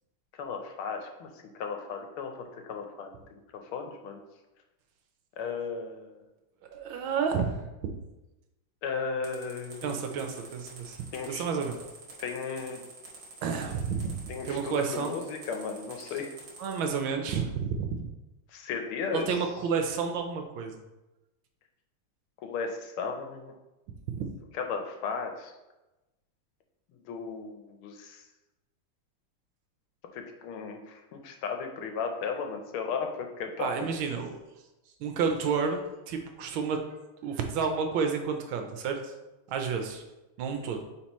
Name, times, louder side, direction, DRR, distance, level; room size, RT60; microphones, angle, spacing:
voice 1, 0.4-1.3 1.6-3.2 3.5-4.2 5.4-6.2 8.8-10.0 11.1-11.4 12.2-12.8 14.3-16.3 18.5-19.3 22.4-23.5 24.6-25.5 27.1-28.2 30.1-33.7, left 5 dB, 85° left, 4 dB, 1.6 m, -35 dB
voice 2, 6.7-7.7 9.8-11.8 13.4-15.2 16.6-18.0 19.1-20.7 24.1-24.3 33.6-34.3 35.0-36.8 37.2-39.1 39.5-40.0 40.4-40.8, right 5 dB, 75° right, 5 dB, 1.5 m, -30 dB
sound 1, 9.2-16.8, right 3 dB, 50° right, 2.0 m, -48 dB
8.8 x 3.7 x 3.0 m, 1.0 s
omnidirectional pair, 2.3 m